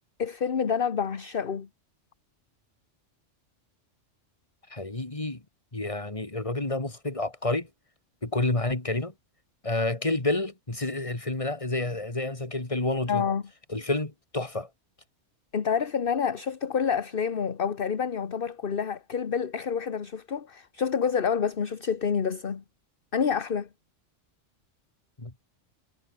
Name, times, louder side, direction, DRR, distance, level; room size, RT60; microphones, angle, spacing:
voice 1, 0.2-1.7 13.1-13.4 15.5-22.6 23.1-23.7, left 6 dB, 50° left, 1.3 m, -28 dB
voice 2, 4.7-5.4 5.7-7.7 8.2-9.1 9.6-13.3 13.7-14.7 25.2-25.3, left 2 dB, 25° left, 2.7 m, -29 dB
omnidirectional pair, 1.3 m